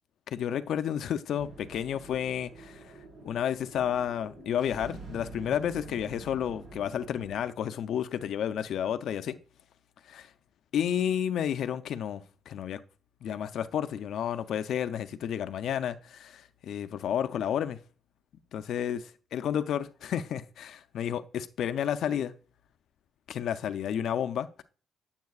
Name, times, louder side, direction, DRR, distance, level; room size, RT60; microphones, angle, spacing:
voice 1, 0.3-2.8 3.2-9.4 10.1-10.2 10.7-12.8 13.2-17.8 18.5-22.3 23.3-24.6, left 9 dB, 70° left, 0.5 m, -31 dB
sound 1, 1.4-7.4, right 3 dB, 50° right, 4.6 m, -47 dB
10.5 x 7.3 x 2.4 m
cardioid pair, 90°, 0 cm